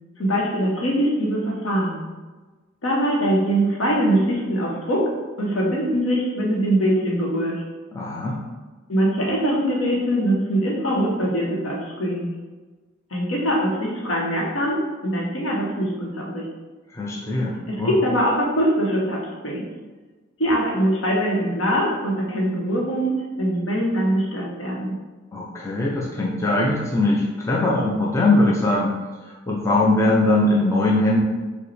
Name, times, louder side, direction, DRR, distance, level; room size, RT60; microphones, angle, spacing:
voice 1, 0.2-2.1 2.8-5.1 5.4-7.6 8.9-12.3 13.1-16.5 17.7-19.7 20.4-25.0, equal, 70° left, -2 dB, 0.8 m, -22 dB
voice 2, 7.9-8.4 16.9-18.0 25.3-29.0 29.2-31.2, left 2 dB, 15° left, -4 dB, 0.4 m, -21 dB
4.8 x 2.1 x 3.1 m, 1.3 s
head